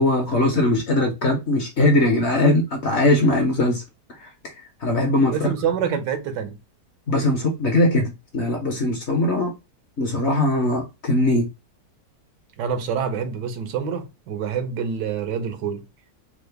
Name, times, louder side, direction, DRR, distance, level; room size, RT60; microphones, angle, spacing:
voice 1, 0.0-3.8 4.2-4.3 4.8-5.5 7.1-9.5 10.0-11.5, left 1 dB, 55° left, 0.8 m, -20 dB
voice 2, 5.3-6.6 12.6-15.8, right 7 dB, 90° right, 1.3 m, -26 dB
3.7 x 2.0 x 3.3 m
omnidirectional pair, 1.8 m